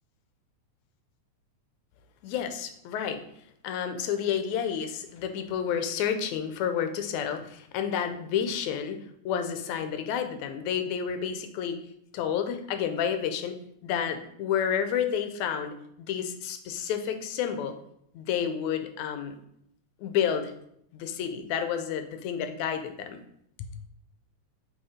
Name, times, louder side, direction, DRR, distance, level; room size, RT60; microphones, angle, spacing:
voice 1, 2.2-3.2 3.6-11.8 12.1-13.6 13.8-17.8 18.1-19.4 20.0-20.5 20.9-23.2 23.6-23.7, left 8 dB, 75° left, 7 dB, 1.8 m, -30 dB
7.1 x 3.1 x 5.0 m, 0.72 s
omnidirectional pair, 3.5 m